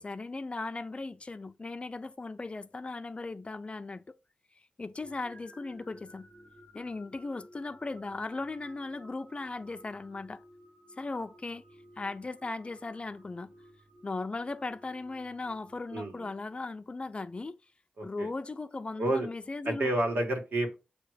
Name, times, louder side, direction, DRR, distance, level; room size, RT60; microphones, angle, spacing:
voice 1, 0.0-4.0 4.8-6.3 6.7-10.4 11.0-11.6 12.0-13.5 14.0-17.6 18.0-19.9, left 3 dB, 35° left, 0.5 m, -37 dB
sound 1, 5.0-17.0, equal, 25° right, 4.0 m, -56 dB
voice 2, 15.9-16.3 18.0-18.3 18.9-19.3 19.6-20.8, right 1 dB, 85° right, 1.8 m, -30 dB
7.7 x 2.9 x 4.9 m
wide cardioid pair, 90°, 3 cm